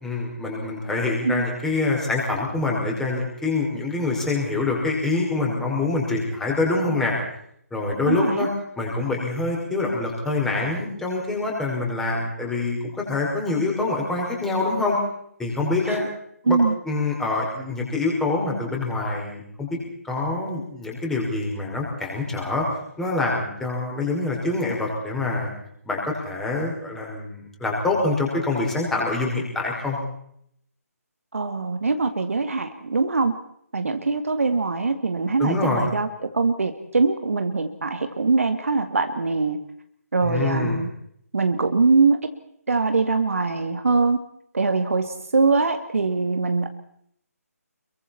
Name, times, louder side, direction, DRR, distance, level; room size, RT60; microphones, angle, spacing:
voice 1, 0.0-7.1 7.7-8.5 8.8-15.0 15.4-16.0 16.5-16.6 16.9-19.8 20.0-22.7 23.0-25.5 25.9-30.0 35.4-35.9 40.2-40.8, left 3 dB, 5° left, -2 dB, 5.3 m, -25 dB
voice 2, 8.1-8.5 15.8-16.1 16.5-16.8 31.3-33.4 33.7-39.6 40.1-40.9 41.3-42.2 42.7-44.2 44.5-46.7, right 4 dB, 55° right, 8 dB, 2.1 m, -22 dB
29.0 x 23.0 x 4.4 m, 0.70 s
figure-of-eight pair, 145°, 9 cm